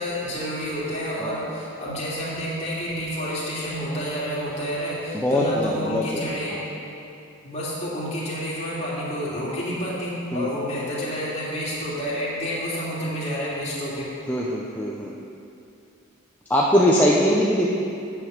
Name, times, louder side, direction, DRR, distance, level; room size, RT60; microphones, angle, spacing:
voice 1, 0.0-6.6 7.4-14.1, equal, 30° left, -8 dB, 2.7 m, -29 dB
voice 2, 1.2-1.5 5.1-6.6 10.3-10.5 14.3-15.1 16.5-17.7, equal, 10° left, -4 dB, 0.6 m, -22 dB
8.8 x 7.0 x 6.5 m, 2.6 s
head